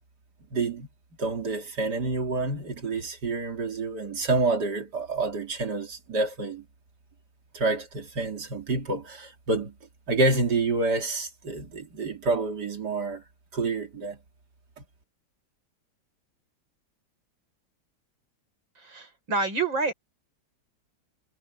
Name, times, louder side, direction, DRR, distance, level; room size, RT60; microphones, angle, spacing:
voice 1, 0.5-0.9 1.2-6.6 7.5-9.7 10.1-13.2 13.5-14.2, right 3 dB, 55° right, 3.2 m, -28 dB
voice 2, 18.8-19.9, right 3 dB, 70° right, 6.0 m, -28 dB
omnidirectional pair, 2.2 m